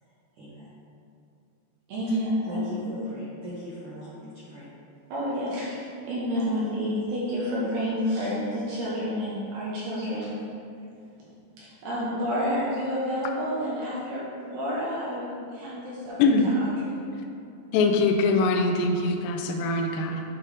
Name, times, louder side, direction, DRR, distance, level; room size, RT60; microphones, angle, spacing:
voice 1, 0.3-0.7 2.1-2.2 2.5-4.7 10.1-10.3, equal, 85° right, -10 dB, 1.7 m, -40 dB
voice 2, 1.9-2.9 5.1-10.3 11.6-17.0, equal, 70° right, -8 dB, 2.8 m, -29 dB
voice 3, 16.2-16.5 17.7-20.2, left 3 dB, 85° left, 3 dB, 2.5 m, -23 dB
8.5 x 3.4 x 4.8 m, 2.6 s
omnidirectional pair, 5.5 m